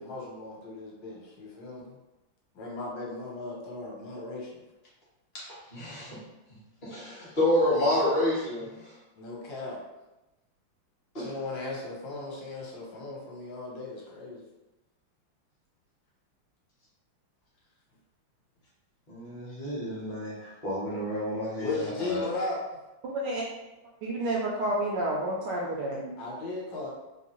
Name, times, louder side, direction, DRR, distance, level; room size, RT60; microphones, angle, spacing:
voice 1, 0.0-2.0 2.5-4.5 9.2-9.8 11.2-14.4 21.6-22.7 26.2-26.9, left 2 dB, 65° left, -3 dB, 1.4 m, -37 dB
voice 2, 5.3-6.2 6.8-9.0 11.1-11.3 19.1-22.2, left 1 dB, 40° left, -7 dB, 0.7 m, -29 dB
voice 3, 23.0-23.4 24.0-26.1, right 1 dB, 90° right, -3 dB, 0.9 m, -30 dB
3.4 x 2.6 x 2.9 m, 1.0 s
omnidirectional pair, 2.4 m